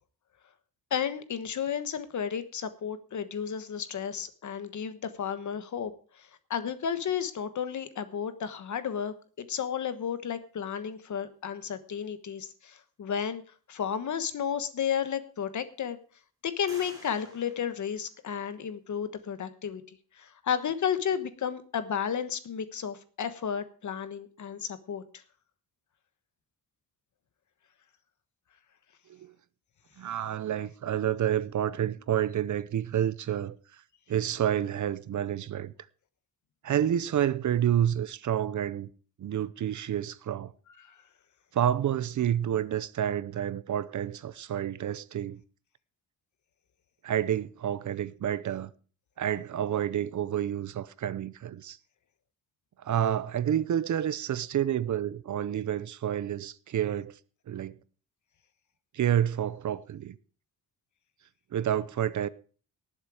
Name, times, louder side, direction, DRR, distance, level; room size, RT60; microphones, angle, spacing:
voice 1, 0.9-5.9 6.2-13.4 13.7-16.0 16.4-19.8 20.2-25.0, left 8 dB, 50° left, 1.3 m, -32 dB
sound 1, 14.4-14.5 15.1-15.7 16.7-18.6, right 2 dB, 10° right, 6.0 m, -53 dB
voice 2, 30.0-33.5 34.1-35.7 36.6-38.9 39.2-40.5 41.5-45.4 47.0-48.7 49.2-51.8 52.8-57.1 57.5-57.8 58.9-60.2 61.5-62.3, right 10 dB, 50° right, 0.7 m, -29 dB
18.5 x 7.6 x 4.9 m
wide cardioid pair, 175°, 37 cm